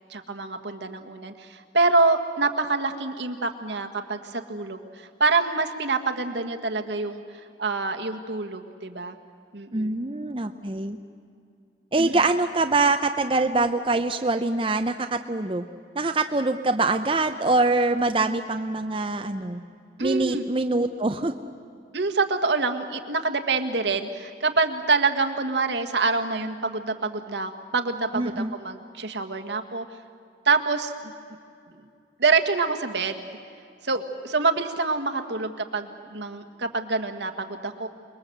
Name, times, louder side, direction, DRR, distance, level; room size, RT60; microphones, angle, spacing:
voice 1, 0.1-7.2 7.6-9.1 9.5-9.9 12.0-12.1 20.0-20.4 21.9-29.8 30.4-31.1 32.2-33.3 33.8-37.9, right 3 dB, 75° right, 5 dB, 1.6 m, -26 dB
voice 2, 9.7-11.0 11.9-15.6 16.0-19.6 20.0-21.3 28.1-28.5, right 2 dB, 30° right, 6 dB, 0.7 m, -24 dB
29.0 x 21.5 x 7.9 m, 2.4 s
head